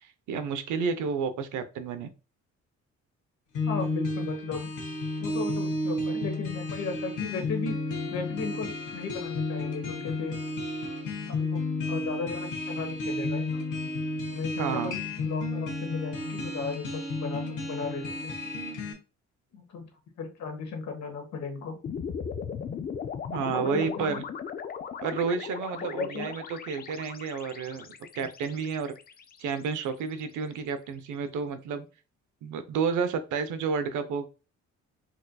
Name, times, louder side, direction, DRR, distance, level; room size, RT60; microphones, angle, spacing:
voice 1, 0.3-2.1 14.6-15.0 23.3-24.2 25.0-28.9 29.4-31.9 32.4-34.3, right 5 dB, 80° right, 10 dB, 0.6 m, -31 dB
sound 1, 3.6-18.9, left 2 dB, 85° left, 1.2 m, -32 dB
voice 2, 3.6-4.7 5.2-7.8 8.1-10.4 11.3-13.6 14.3-18.3 19.5-19.9 20.2-21.8 23.5-24.2 25.8-26.3, left 4 dB, 65° left, 4 dB, 1.1 m, -36 dB
sound 2, 21.8-30.1, left 7 dB, 30° left, 0.4 m, -38 dB
4.3 x 2.6 x 2.2 m, 0.32 s
cardioid pair, 90°, 30 cm